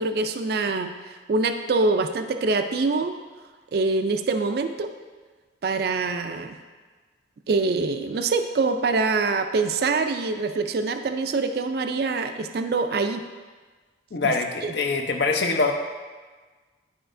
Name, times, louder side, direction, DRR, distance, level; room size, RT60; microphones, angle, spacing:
voice 1, 0.0-3.2 3.7-4.9 5.6-6.6 7.5-13.3 14.2-14.3 14.6-14.7, right 3 dB, 55° right, 7 dB, 0.4 m, -25 dB
voice 2, 14.1-15.7, left 3 dB, 65° left, 4 dB, 0.7 m, -24 dB
11.0 x 5.0 x 2.6 m, 1.4 s
head